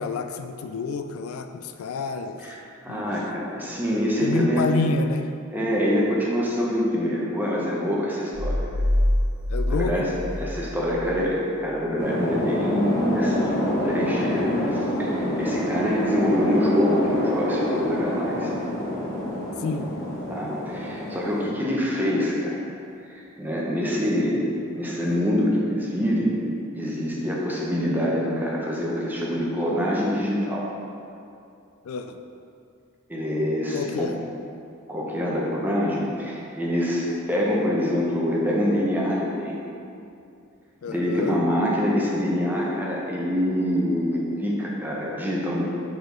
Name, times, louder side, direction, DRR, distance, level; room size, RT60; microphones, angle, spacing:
voice 1, 0.0-2.4 2.9-3.1 4.2-5.3 9.5-9.9 19.6-19.9 31.9-32.1 33.7-34.2 40.8-41.4, left 4 dB, 85° left, 8 dB, 0.3 m, -28 dB
voice 2, 2.8-4.6 5.5-8.7 9.7-10.1 10.4-13.6 13.8-18.5 20.3-22.6 23.1-24.4 24.7-26.3 26.7-30.7 33.1-34.1 34.9-39.6 40.8-45.6, equal, 10° right, -4 dB, 0.8 m, -25 dB
sound 1, 8.3-11.2, left 1 dB, 65° right, 1.1 m, -25 dB
sound 2, 12.0-21.5, left 1 dB, 15° left, 1.2 m, -27 dB
5.1 x 4.0 x 5.1 m, 2.6 s
head